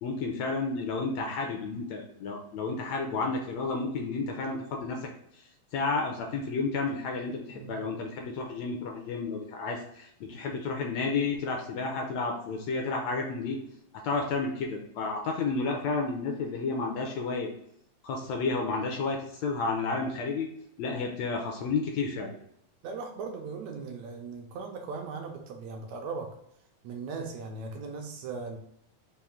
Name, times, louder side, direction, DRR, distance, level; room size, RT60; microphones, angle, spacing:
voice 1, 0.0-5.1 5.7-13.6 14.0-17.5 18.0-20.5 20.8-22.3, left 4 dB, 80° left, 2 dB, 1.7 m, -31 dB
voice 2, 22.8-26.3 26.8-28.6, right 4 dB, 80° right, 3 dB, 1.7 m, -38 dB
5.5 x 2.5 x 3.6 m, 0.72 s
omnidirectional pair, 3.5 m